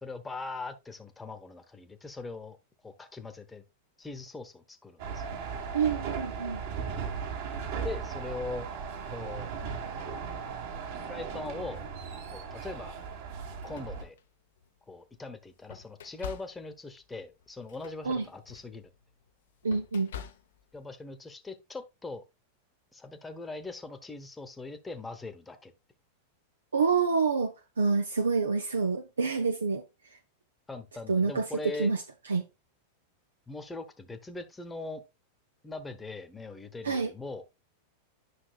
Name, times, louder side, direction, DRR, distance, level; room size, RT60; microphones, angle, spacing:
voice 1, 0.0-2.6 2.8-3.6 4.0-5.2 7.8-8.7 9.1-9.5 11.1-11.8 12.3-13.0 13.6-14.1 14.9-18.9 20.7-22.2 22.9-25.7 30.7-31.9 33.5-35.0 35.6-37.4, left 3 dB, 10° left, 1.1 m, -41 dB
sound 1, 5.0-14.0, right 6 dB, 55° right, 1.9 m, -37 dB
voice 2, 5.7-6.6 18.1-18.2 19.6-20.1 26.7-29.8 31.1-32.0 32.3-32.4 36.8-37.1, right 5 dB, 75° right, 0.7 m, -27 dB
sound 2, 12.6-12.7 13.4-14.8 15.3-20.8, left 8 dB, 65° left, 0.8 m, -47 dB
10.0 x 5.8 x 2.4 m
figure-of-eight pair, 90°, 0 cm